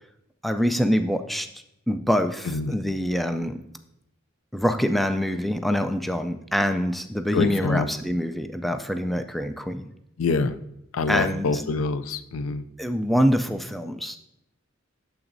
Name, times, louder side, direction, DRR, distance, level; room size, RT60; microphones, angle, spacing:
voice 1, 0.4-1.5 1.9-3.6 4.5-9.9 11.1-11.7 12.8-14.2, equal, ahead, 7 dB, 0.3 m, -25 dB
voice 2, 7.3-7.9 10.2-10.6 10.9-12.6, left 4 dB, 80° left, 13 dB, 0.4 m, -25 dB
8.8 x 7.1 x 2.6 m, 0.82 s
head